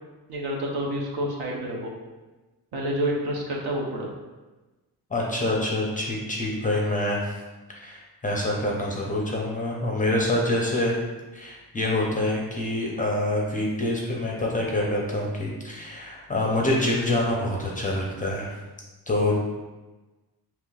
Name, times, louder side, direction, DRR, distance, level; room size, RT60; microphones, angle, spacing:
voice 1, 0.3-1.9 2.7-4.1, right 1 dB, 70° right, -2 dB, 0.9 m, -28 dB
voice 2, 5.1-7.3 7.7-10.9 11.3-18.5 19.1-19.4, left 1 dB, 20° left, -2 dB, 0.5 m, -26 dB
5.6 x 2.9 x 2.3 m, 1.2 s
wide cardioid pair, 175°, 40 cm